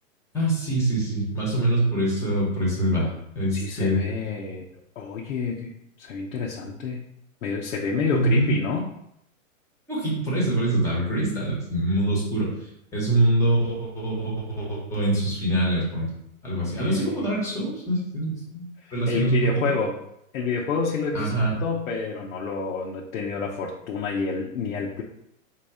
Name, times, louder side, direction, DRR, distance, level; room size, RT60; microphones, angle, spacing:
voice 1, 0.3-4.0 8.1-8.5 9.9-16.1 16.4-18.6 18.9-19.6 21.1-21.5, right 1 dB, 5° left, -5 dB, 1.0 m, -24 dB
voice 2, 3.5-4.7 5.0-7.0 7.4-8.9 16.6-17.3 18.8-20.0 20.3-21.3 21.6-25.0, left 5 dB, 75° left, -2 dB, 0.8 m, -29 dB
3.8 x 2.9 x 4.8 m, 0.79 s
hypercardioid pair, 155°, 41 cm